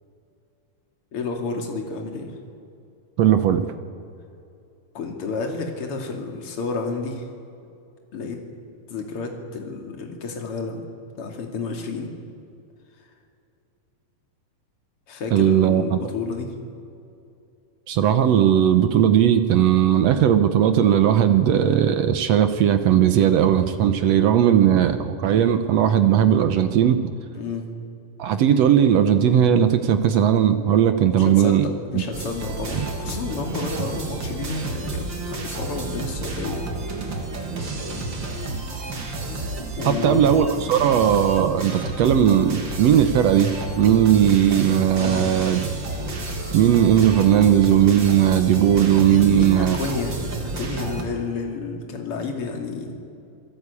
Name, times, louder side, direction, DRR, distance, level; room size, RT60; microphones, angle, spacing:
voice 1, 1.1-2.3 4.9-7.3 8.1-8.4 8.9-10.8 11.2-12.1 15.1-16.5 27.3-27.7 31.2-36.6 37.6-37.7 39.8-40.2 45.0-45.4 49.1-50.2 50.6-52.9, left 4 dB, 40° left, 2 dB, 3.2 m, -30 dB
voice 2, 3.2-3.7 15.3-16.0 17.9-27.1 28.2-31.6 31.9-32.0 32.7-32.8 39.8-45.6 46.5-49.7, right 9 dB, 70° right, 9 dB, 1.6 m, -18 dB
sound 1, 32.1-51.0, right 2 dB, 35° right, 2.7 m, -31 dB
27.5 x 17.5 x 8.4 m, 2.6 s
omnidirectional pair, 4.0 m